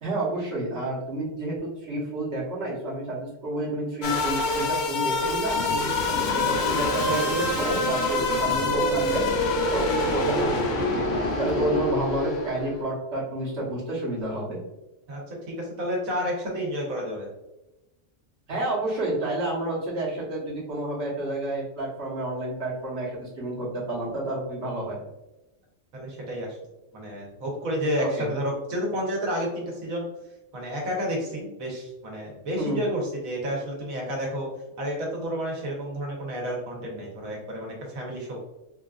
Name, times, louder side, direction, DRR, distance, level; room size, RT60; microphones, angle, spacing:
voice 1, 0.0-5.6 6.1-9.3 9.7-14.6 18.5-25.0 28.0-28.3 32.5-32.8, right 1 dB, 55° right, -5 dB, 1.3 m, -30 dB
sound 1, 4.0-12.8, left 2 dB, 60° left, 0.8 m, -26 dB
sound 2, 5.5-11.8, left 1 dB, 80° left, 1.4 m, -33 dB
voice 2, 15.1-17.3 25.9-26.6 26.9-30.1 30.5-34.5 34.8-38.4, equal, 90° right, -1 dB, 1.3 m, -30 dB
3.7 x 2.5 x 2.3 m, 0.98 s
omnidirectional pair, 1.4 m